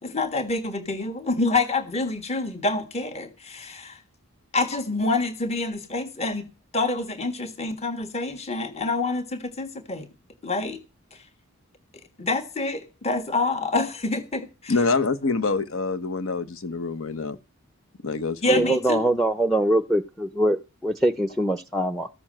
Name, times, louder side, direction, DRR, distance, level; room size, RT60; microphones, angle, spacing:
voice 1, 0.0-4.0 4.5-6.5 6.7-10.1 10.4-10.8 11.1-11.2 12.2-14.7 18.4-19.0, left 3 dB, 30° left, 1.5 m, -27 dB
voice 2, 14.7-17.4 18.0-18.7, left 3 dB, 75° left, 1.1 m, -26 dB
voice 3, 18.5-22.1, right 1 dB, ahead, 0.6 m, -23 dB
14.5 x 7.0 x 7.5 m
head